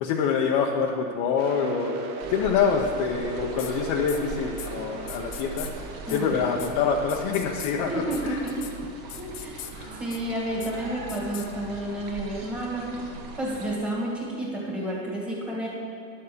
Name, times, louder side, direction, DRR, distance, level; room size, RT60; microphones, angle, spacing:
voice 1, 0.0-1.9 2.3-5.7 6.1-7.9 8.2-8.4 9.8-9.9, left 6 dB, 45° left, 0 dB, 0.8 m, -25 dB
sound 1, 1.4-9.0, right 5 dB, 65° right, 1.2 m, -38 dB
sound 2, 2.2-13.8, right 3 dB, 45° right, 1.6 m, -41 dB
sound 3, 3.6-3.7 4.1-4.2 4.6-4.7 5.1-5.7 6.1-6.2 6.6-6.7 7.1-7.7 8.1-8.2 8.5-8.7 9.1-9.7 10.1-10.2 10.6-10.7 11.1-11.5, left 11 dB, 30° left, 0.5 m, -39 dB
voice 2, 6.1-6.4 7.9-8.6 9.2-9.6 9.9-13.0 13.4-15.7, right 1 dB, ahead, -5 dB, 1.9 m, -31 dB
11.0 x 7.1 x 5.0 m, 2.6 s
supercardioid pair, 140°, 49 cm